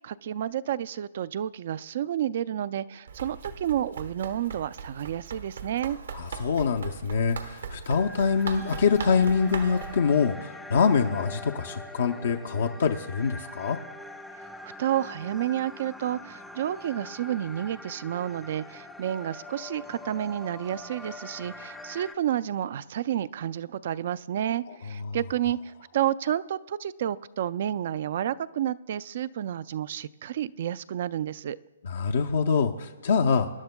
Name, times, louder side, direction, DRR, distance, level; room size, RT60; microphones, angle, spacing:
voice 1, 0.0-6.0 14.3-31.6, right 11 dB, 55° right, 17 dB, 0.3 m, -30 dB
Run, 3.1-10.0, right 6 dB, 80° right, 1.1 m, -39 dB
voice 2, 6.1-13.8 25.1-25.2 31.8-33.5, left 5 dB, 65° left, 4 dB, 0.6 m, -25 dB
sound 1, 7.9-22.2, left 2 dB, 5° left, 0.5 m, -43 dB
24.5 x 10.5 x 2.2 m, 1.1 s
hypercardioid pair, 140°, 0 cm